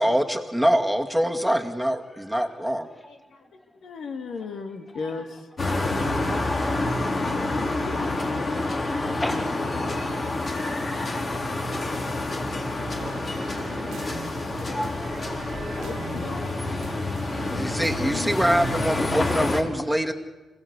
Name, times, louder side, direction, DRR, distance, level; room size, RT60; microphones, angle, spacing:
voice 1, 0.0-2.9 17.5-20.1, equal, ahead, 3 dB, 2.3 m, -24 dB
voice 2, 2.1-2.7 2.9-3.1 4.4-4.6 4.9-7.6 8.5-9.5 12.6-15.9 18.4-18.5 19.1-20.1, left 1 dB, 20° left, 0 dB, 5.0 m, -40 dB
voice 3, 3.8-5.4 7.3-8.5 15.7-16.5, left 4 dB, 75° left, 5 dB, 2.4 m, -36 dB
sound 1, 5.6-19.6, left 2 dB, 40° left, 4.1 m, -28 dB
sound 2, 12.9-19.2, right 6 dB, 80° right, 1.3 m, -41 dB
26.5 x 17.0 x 8.4 m, 1.2 s
cardioid pair, 90°, 0 cm